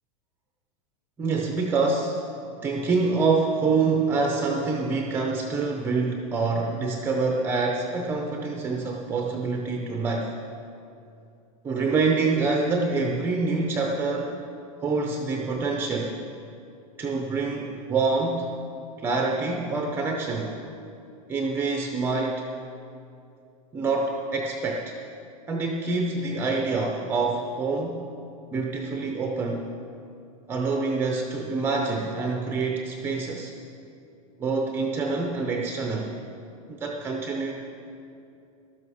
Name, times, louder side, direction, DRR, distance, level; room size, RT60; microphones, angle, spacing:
voice 1, 1.2-2.2 2.6-10.4 11.6-14.4 14.8-16.2 17.0-18.4 19.0-20.6 21.3-22.5 23.7-25.0 25.5-28.0 28.5-29.7 30.5-33.5 34.4-36.2 36.7-37.5, right 4 dB, 10° right, 2 dB, 0.6 m, -26 dB
13.0 x 12.0 x 4.9 m, 2.6 s
supercardioid pair, 170°, 18 cm